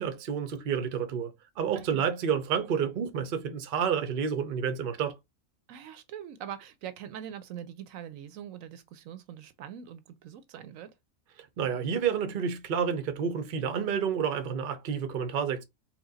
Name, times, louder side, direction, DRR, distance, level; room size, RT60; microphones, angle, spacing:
voice 1, 0.0-5.2 11.6-15.6, right 7 dB, 55° right, 0.6 m, -29 dB
voice 2, 1.7-2.0 5.7-10.9, right 9 dB, 75° right, 0.9 m, -43 dB
4.4 x 2.2 x 3.8 m
omnidirectional pair, 1.5 m